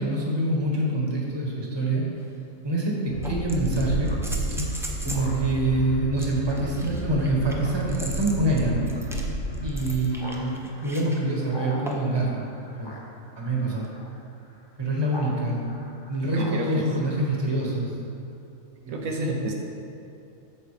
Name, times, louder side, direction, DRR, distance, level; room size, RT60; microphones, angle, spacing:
voice 1, 0.0-2.0 2.6-4.1 5.0-8.9 9.6-12.9 13.4-13.9 14.8-15.7 16.1-17.9 18.8-19.4, right 1 dB, 20° right, -2 dB, 1.4 m, -26 dB
sound 1, 2.2-2.3 3.2-5.3 6.2-11.2 11.9-12.2 13.8-13.9, equal, 5° right, 0.5 m, -39 dB
Train, 3.1-9.9, equal, 65° left, 1.6 m, -31 dB
Speech synthesizer, 4.0-15.3 15.6-17.8, left 1 dB, 20° left, 1.2 m, -45 dB
voice 2, 16.4-16.9 18.9-19.5, right 2 dB, 80° right, 0 dB, 1.4 m, -30 dB
8.2 x 6.5 x 5.0 m, 2.8 s
omnidirectional pair, 1.4 m